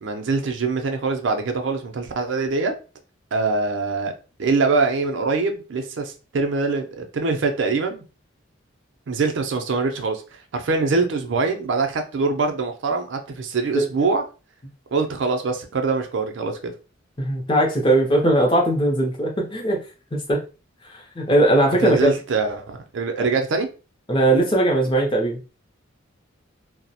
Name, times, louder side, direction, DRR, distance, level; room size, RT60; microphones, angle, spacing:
voice 1, 0.0-2.7 3.3-4.1 4.4-8.0 9.1-14.2 14.9-16.7 21.8-23.7, right 4 dB, 65° right, 0.4 m, -23 dB
voice 2, 17.2-19.8 20.1-20.4 20.9-22.1 24.1-25.4, right 1 dB, 25° left, 0.5 m, -19 dB
2.2 x 2.0 x 2.7 m
head